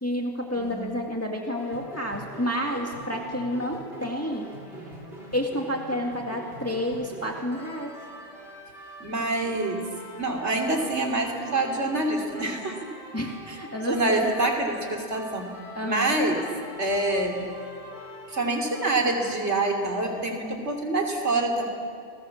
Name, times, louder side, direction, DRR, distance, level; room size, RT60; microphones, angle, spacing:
voice 1, 0.0-4.5 5.3-7.9 13.1-14.3 15.7-16.1, equal, 10° left, 0 dB, 2.1 m, -30 dB
voice 2, 0.6-1.0 9.0-9.9 10.2-12.9 13.9-15.5 15.8-16.4 16.8-17.4 18.3-21.7, right 2 dB, 75° right, 2 dB, 3.4 m, -26 dB
sound 1, 1.5-20.3, equal, 60° right, 4.4 m, -44 dB
29.5 x 20.5 x 7.2 m, 2.4 s
omnidirectional pair, 1.2 m